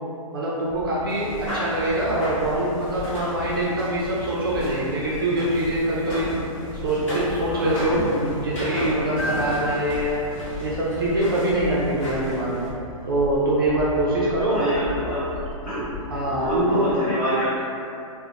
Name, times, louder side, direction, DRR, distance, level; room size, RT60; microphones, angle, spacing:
voice 1, 0.3-6.3 6.8-10.2 10.6-12.7 13.1-14.6 15.0-15.1 16.1-16.9, right 1 dB, 40° right, -6 dB, 0.4 m, -24 dB
sound 1, 0.6-17.0, left 2 dB, 80° left, 0.4 m, -38 dB
sound 2, 1.1-12.7, left 1 dB, 60° left, 0.9 m, -33 dB
voice 2, 7.5-7.9 14.5-15.2 15.7-15.8 16.3-17.6, equal, 20° left, -12 dB, 0.6 m, -27 dB
2.8 x 2.0 x 2.4 m, 2.7 s
hypercardioid pair, 180°, 18 cm